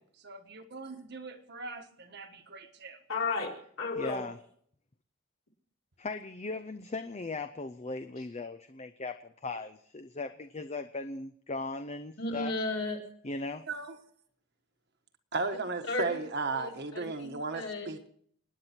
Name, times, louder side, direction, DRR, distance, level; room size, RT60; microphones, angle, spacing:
voice 1, 0.2-3.0 13.7-13.9 15.3-18.1, right 3 dB, 50° right, 5 dB, 1.5 m, -36 dB
voice 2, 3.1-4.2 12.2-13.0 15.9-16.0 16.5-17.9, left 3 dB, 65° left, -1 dB, 3.8 m, -34 dB
voice 3, 4.0-4.4 6.0-12.5 13.2-13.6, left 3 dB, 30° left, 8 dB, 0.6 m, -38 dB
29.0 x 9.8 x 4.5 m, 0.64 s
head